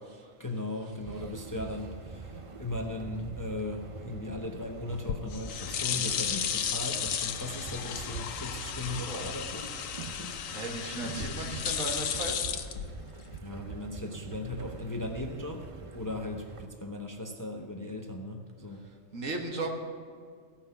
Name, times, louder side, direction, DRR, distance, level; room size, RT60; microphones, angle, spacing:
voice 1, 0.4-9.7 10.1-10.7 13.3-15.7 15.9-18.9, left 2 dB, 20° left, 2 dB, 0.7 m, -38 dB
sound 1, 1.0-16.7, right 4 dB, 45° right, 0.4 m, -45 dB
sound 2, 4.9-13.4, left 8 dB, 85° left, 1.1 m, -34 dB
voice 2, 8.9-9.3 10.5-12.5 19.1-19.7, right 2 dB, 80° right, 2 dB, 1.8 m, -36 dB
16.0 x 5.7 x 6.9 m, 2.1 s
omnidirectional pair, 1.3 m